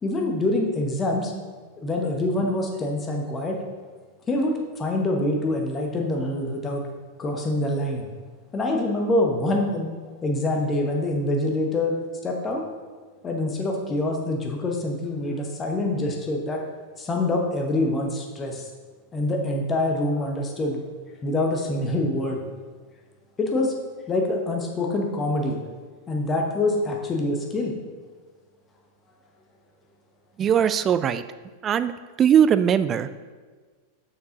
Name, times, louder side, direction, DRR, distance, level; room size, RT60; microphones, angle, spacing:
voice 1, 0.0-1.3 1.8-3.6 4.3-6.8 7.2-8.0 8.5-9.9 10.2-11.9 12.2-12.6 13.2-16.6 17.0-18.6 19.1-20.8 21.2-22.4 23.4-23.7 24.1-25.6 26.1-27.7, left 2 dB, 20° left, 1 dB, 1.1 m, -25 dB
voice 2, 30.4-31.2 31.6-31.9 32.2-33.3, right 8 dB, 25° right, 13 dB, 0.3 m, -20 dB
6.5 x 5.5 x 3.8 m, 1.4 s
figure-of-eight pair, 90°, 0 cm